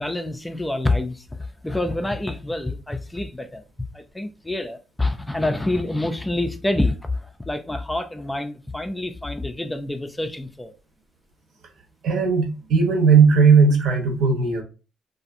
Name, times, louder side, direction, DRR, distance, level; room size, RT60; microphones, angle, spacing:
voice 1, 0.0-10.7, left 2 dB, 10° left, 0.3 m, -27 dB
voice 2, 12.0-14.6, right 5 dB, 75° right, 0.9 m, -17 dB
2.5 x 2.4 x 2.5 m
cardioid pair, 90°, 0 cm